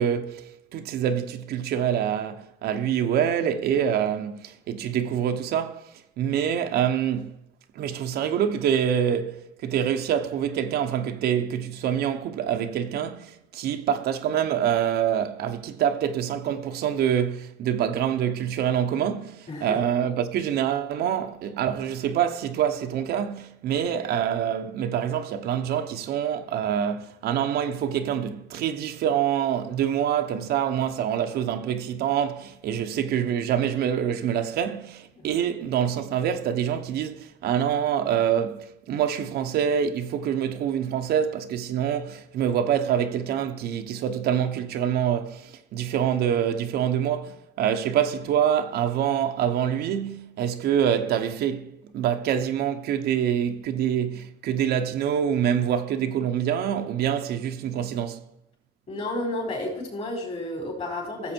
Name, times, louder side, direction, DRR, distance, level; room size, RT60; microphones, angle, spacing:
voice 1, 0.0-5.8 6.2-7.3 7.7-9.4 9.6-51.7 51.9-58.2, right 9 dB, 70° right, 0.9 m, -26 dB
voice 2, 19.5-19.8 35.1-35.3 58.9-61.3, left 1 dB, 40° left, 4.7 m, -31 dB
14.0 x 7.3 x 4.5 m
cardioid pair, 110°, 17 cm